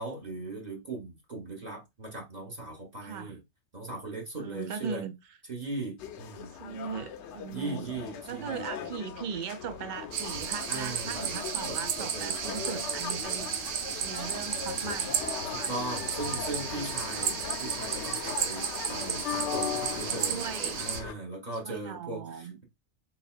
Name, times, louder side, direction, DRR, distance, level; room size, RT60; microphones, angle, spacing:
voice 1, 0.0-3.4 3.7-5.0 5.5-6.5 7.5-8.9 10.7-12.9 15.5-22.6, right 2 dB, 35° right, 1.1 m, -39 dB
voice 2, 3.0-3.3 4.4-5.1 6.6-8.0 8.3-13.7 14.0-15.7 16.3-16.4 17.1-17.2 19.9-20.8 21.6-22.6, right 7 dB, 65° right, 0.5 m, -39 dB
sound 1, 6.0-21.1, left 8 dB, 70° left, 0.8 m, -38 dB
sound 2, 10.1-21.0, right 8 dB, 90° right, 1.0 m, -34 dB
3.9 x 3.5 x 2.4 m
omnidirectional pair, 1.3 m